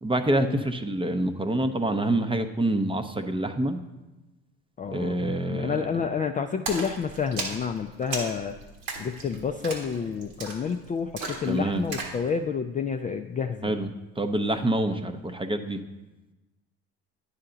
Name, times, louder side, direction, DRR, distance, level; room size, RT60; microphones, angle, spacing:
voice 1, 0.0-3.8 4.9-5.9 11.5-11.8 13.6-13.9 14.2-15.8, right 1 dB, 15° right, 8 dB, 0.6 m, -26 dB
voice 2, 4.8-8.5 9.0-13.7, left 6 dB, 20° left, 5 dB, 0.4 m, -29 dB
Splash splatter, 6.7-12.2, right 3 dB, 85° right, 1.6 m, -36 dB
9.7 x 5.8 x 3.9 m, 1.1 s
hypercardioid pair, 70°, 38 cm